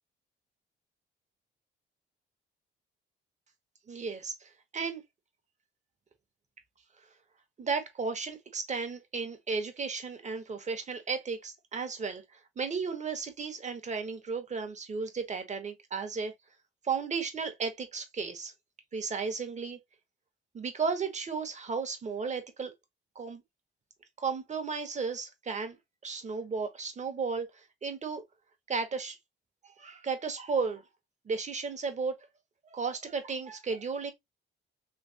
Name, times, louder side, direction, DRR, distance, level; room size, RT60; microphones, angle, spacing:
voice 1, 3.9-5.0 7.6-16.3 16.8-18.5 18.9-19.8 20.5-22.7 23.1-23.4 24.2-25.8 26.0-28.2 28.7-29.2 29.8-30.8 31.2-32.1 32.7-34.1, right 5 dB, 35° right, 1.0 m, -34 dB
3.2 x 2.9 x 2.8 m
cardioid pair, 90°, 20 cm